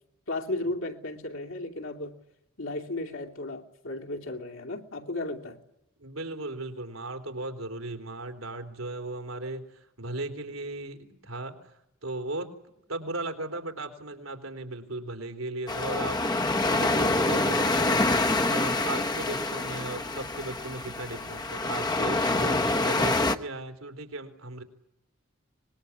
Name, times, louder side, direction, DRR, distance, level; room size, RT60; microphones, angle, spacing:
voice 1, 0.3-2.1 2.6-5.6, left 2 dB, 70° left, 1 dB, 2.9 m, -34 dB
voice 2, 6.0-11.7 12.0-12.5 12.9-16.2 16.6-18.0 18.4-24.6, right 2 dB, 80° right, 7 dB, 3.6 m, -37 dB
sound 1, 15.7-23.4, left 2 dB, 20° left, 1.0 m, -26 dB
25.0 x 21.0 x 9.8 m, 0.84 s
head